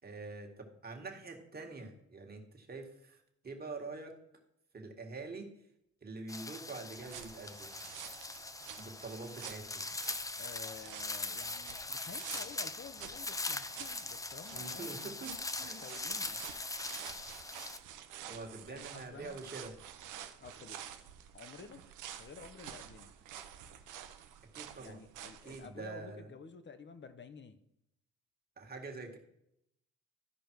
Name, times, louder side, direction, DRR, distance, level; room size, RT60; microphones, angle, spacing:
voice 1, 0.0-4.2 4.7-5.5 6.0-7.8 8.8-9.9 14.5-15.8 18.2-19.7 24.5-25.0 25.4-26.3 28.6-29.2, right 3 dB, 30° right, 2 dB, 1.9 m, -45 dB
sound 1, 6.3-17.8, left 3 dB, 10° left, 0.5 m, -41 dB
sound 2, 7.0-25.7, right 10 dB, 90° right, 0.8 m, -50 dB
voice 2, 10.4-16.4 18.6-19.4 20.4-20.8 21.3-21.8 22.2-23.1 24.8-27.6, left 5 dB, 40° left, 10 dB, 1.0 m, -51 dB
13.0 x 5.1 x 4.6 m, 0.78 s
cardioid pair, 90°, 30 cm